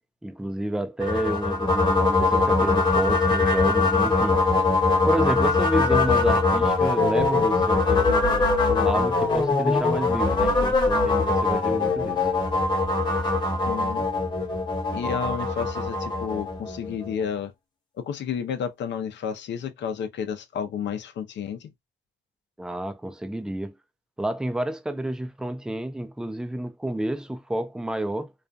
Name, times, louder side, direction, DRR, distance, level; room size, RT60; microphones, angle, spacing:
voice 1, 0.2-4.4 5.1-12.2 22.6-23.8 24.2-28.3, right 1 dB, 5° right, 0.4 m, -30 dB
sound 1, 1.0-17.2, left 3 dB, 20° left, 1.1 m, -22 dB
voice 2, 13.6-14.1 14.9-17.5 18.0-21.7, left 7 dB, 65° left, 0.6 m, -31 dB
2.5 x 2.3 x 2.5 m
cardioid pair, 90°, 20 cm